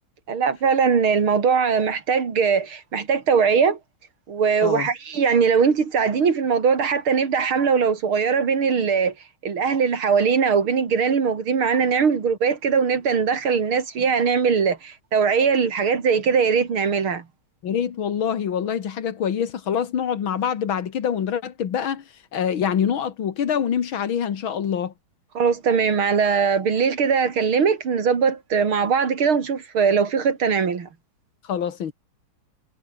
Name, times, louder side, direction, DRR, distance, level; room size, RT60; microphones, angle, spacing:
voice 1, 0.3-3.8 4.3-9.1 9.4-17.2 25.3-30.9, right 6 dB, 85° right, 3.5 m, -21 dB
voice 2, 17.6-22.0 22.3-24.9 31.4-31.9, left 8 dB, 75° left, 2.4 m, -25 dB
omnidirectional pair, 2.2 m